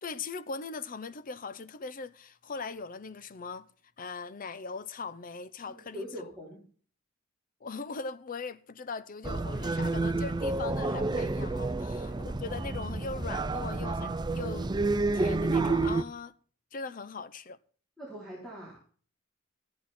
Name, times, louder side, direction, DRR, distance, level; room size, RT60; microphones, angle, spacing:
voice 1, 0.0-3.7 4.0-6.0 7.6-14.7 15.1-16.3 16.7-17.6, left 4 dB, 45° left, 0.6 m, -40 dB
voice 2, 5.7-6.6 11.9-12.2 18.0-18.8, equal, ahead, 4.0 m, -43 dB
sound 1, 9.2-16.0, right 3 dB, 20° right, 0.5 m, -30 dB
14.0 x 10.5 x 4.3 m
head